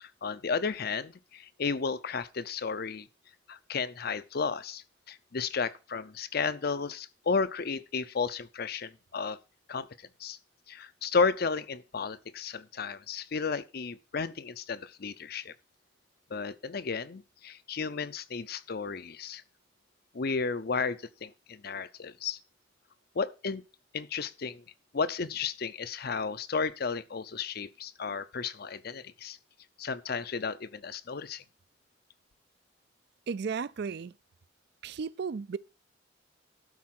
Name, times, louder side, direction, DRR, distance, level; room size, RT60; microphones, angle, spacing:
voice 1, 0.0-3.1 3.5-9.4 9.7-9.9 10.2-10.4 10.7-15.5 16.3-19.4 20.1-22.4 23.2-23.6 23.9-24.6 24.9-29.4 29.8-31.4, left 5 dB, 55° left, 0.6 m, -33 dB
voice 2, 33.3-34.1 34.8-35.6, right 5 dB, 60° right, 0.4 m, -34 dB
12.0 x 4.7 x 5.9 m
head